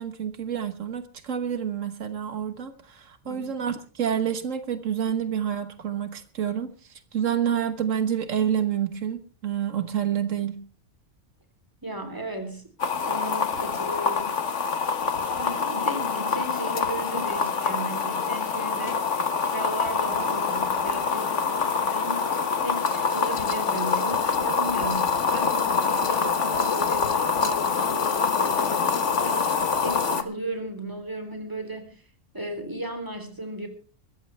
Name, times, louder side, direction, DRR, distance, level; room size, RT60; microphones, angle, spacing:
voice 1, 0.0-10.6, right 8 dB, 90° right, 10 dB, 1.6 m, -28 dB
voice 2, 11.8-12.7 13.0-14.4 15.4-32.0 32.3-33.7, right 1 dB, 15° right, 6 dB, 3.5 m, -35 dB
sound 1, 12.8-30.2, left 5 dB, 70° left, 1.6 m, -25 dB
21.5 x 15.0 x 3.4 m, 0.37 s
omnidirectional pair, 1.3 m